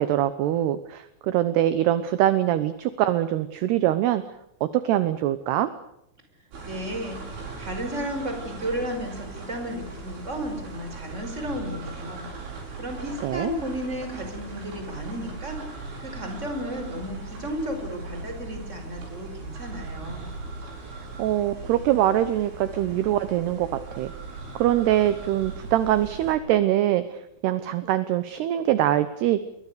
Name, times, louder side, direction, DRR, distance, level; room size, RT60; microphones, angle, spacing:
voice 1, 0.0-4.2 4.6-5.7 13.2-13.5 21.2-23.7 23.9-24.1 24.6-29.4, right 13 dB, 70° right, 12 dB, 2.7 m, -23 dB
sound 1, 6.5-26.4, right 3 dB, 90° right, 10.5 m, -39 dB
voice 2, 6.6-12.3 12.8-20.3, equal, 15° right, 6 dB, 5.1 m, -33 dB
28.0 x 22.5 x 6.8 m, 0.79 s
omnidirectional pair, 5.5 m